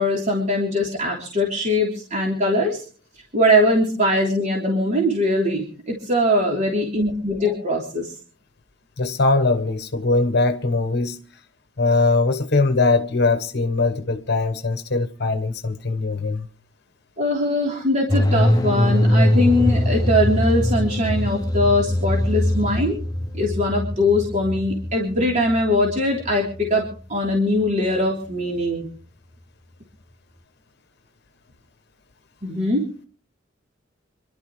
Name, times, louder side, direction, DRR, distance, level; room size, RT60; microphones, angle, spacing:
voice 1, 0.0-2.8 3.3-8.1 17.2-23.0 23.3-26.8 27.1-28.9 32.4-32.8, left 1 dB, 40° right, 3.3 m, -21 dB
voice 2, 9.0-11.2 11.8-16.5, left 3 dB, 55° left, 1.1 m, -21 dB
sound 1, 18.1-28.0 28.2-28.3, left 1 dB, 20° left, 0.8 m, -22 dB
27.0 x 12.0 x 3.1 m
head